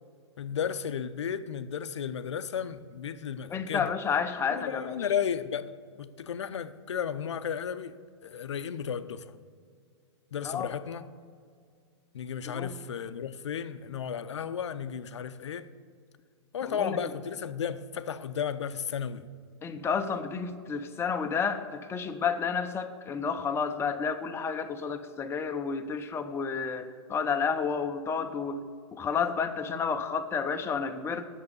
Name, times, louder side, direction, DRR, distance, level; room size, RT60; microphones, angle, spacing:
voice 1, 0.4-4.0 4.5-5.7 6.0-9.4 10.3-11.1 12.1-15.7 16.5-19.3, left 8 dB, 80° left, 0.6 m, -34 dB
voice 2, 3.5-5.0 10.4-10.7 12.5-12.7 16.6-17.0 19.6-28.6 28.9-31.3, left 6 dB, 15° left, 0.8 m, -31 dB
8.6 x 7.2 x 8.2 m
hypercardioid pair, 120°, 15 cm